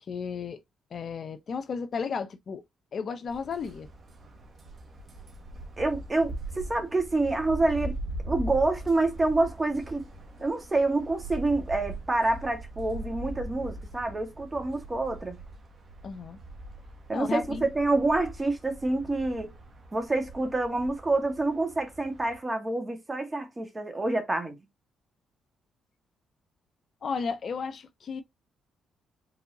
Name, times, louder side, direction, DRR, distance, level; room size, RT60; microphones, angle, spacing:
voice 1, 0.1-0.6 0.9-2.6 2.9-3.9 16.0-16.4 17.1-17.7 27.0-28.2, left 5 dB, 50° left, 0.8 m, -33 dB
outside near motorway wind flagpoles, 3.3-22.4, right 1 dB, 45° right, 1.4 m, -41 dB
voice 2, 5.8-7.9 8.2-10.1 10.4-15.4 17.1-19.5 19.9-24.6, right 2 dB, 20° right, 1.7 m, -27 dB
4.8 x 3.9 x 2.7 m
cardioid pair, 90°, 0 cm